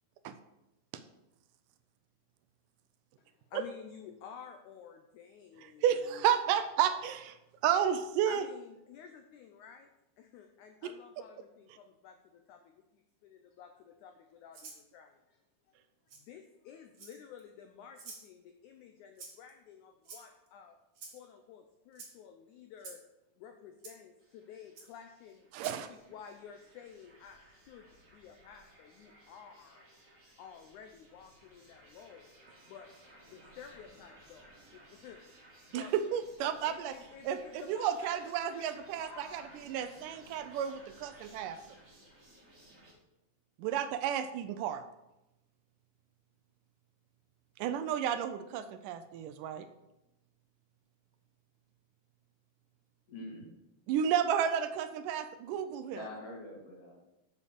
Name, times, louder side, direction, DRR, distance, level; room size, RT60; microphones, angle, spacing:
voice 1, 3.2-6.2 8.3-9.9 10.2-15.4 16.2-20.8 21.1-23.0 23.4-27.9 28.1-29.9 30.3-32.3 32.7-32.9 33.3-35.2 35.7-35.9 36.7-38.2 38.4-39.6, left 7 dB, 80° left, 6 dB, 1.8 m, -52 dB
voice 2, 5.6-7.4 7.6-8.5 10.8-10.9 25.5-25.9 35.7-37.0 37.2-41.6 43.6-44.8 47.6-49.7 53.9-56.0, right 9 dB, 80° right, 10 dB, 2.0 m, -32 dB
Rattle (instrument), 14.5-14.8 16.1-16.2 16.9-17.4 18.0-18.3 19.2-19.5 20.0-20.5 21.0-21.2 21.9-22.1 22.8-23.0 23.8-23.9 24.8-24.9 25.5-25.8, right 4 dB, 45° right, 2.1 m, -48 dB
sound 1, 24.2-42.9, right 1 dB, 25° right, 2.1 m, -59 dB
voice 3, 53.1-53.5 55.9-56.9, left 1 dB, 45° left, -1 dB, 2.9 m, -44 dB
7.2 x 6.8 x 6.6 m, 0.93 s
omnidirectional pair, 4.1 m